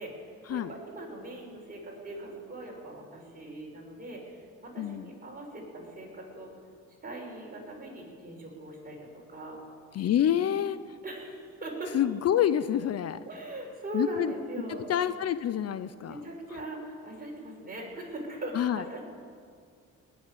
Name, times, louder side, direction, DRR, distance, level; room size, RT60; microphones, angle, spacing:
voice 1, 0.0-6.5 7.0-9.6 11.0-11.9 13.3-14.8 16.1-19.0, right 1 dB, 30° right, -1 dB, 5.6 m, -40 dB
voice 2, 4.8-5.1 9.9-10.8 11.9-13.2 13.9-14.3 14.9-16.2 18.5-18.8, left 10 dB, 55° left, 14 dB, 0.6 m, -27 dB
20.0 x 7.2 x 9.8 m, 2.1 s
cardioid pair, 90°, 30 cm